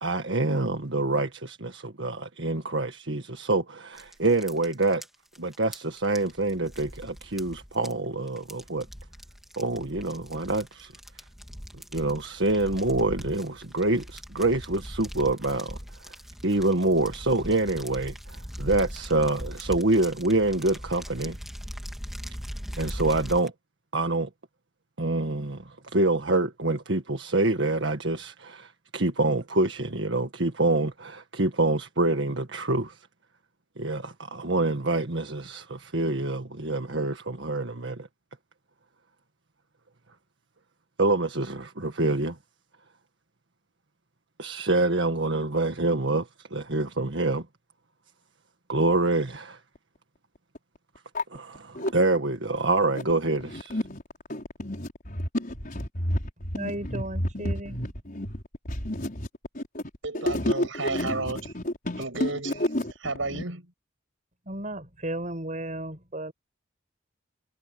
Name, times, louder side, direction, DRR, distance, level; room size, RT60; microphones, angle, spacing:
voice 1, 0.0-5.0 5.4-8.9 9.6-10.9 11.9-15.8 16.0-16.1 16.4-21.4 22.8-23.5 23.9-24.3 25.0-33.0 33.8-38.1 41.0-42.4 44.4-47.5 48.7-49.6 51.3-53.8, right 2 dB, 65° right, 1.8 m, -26 dB
sound 1, 4.0-23.5, equal, ahead, 3.6 m, -40 dB
sound 2, 49.8-49.9 50.6-50.7 51.0-51.9 52.6-63.4, left 1 dB, 45° left, 5.7 m, -30 dB
voice 2, 56.6-57.9 64.5-66.3, right 1 dB, 40° right, 7.1 m, -34 dB
voice 3, 60.0-61.5 62.0-62.7 63.0-63.7, right 3 dB, 85° right, 6.5 m, -32 dB
head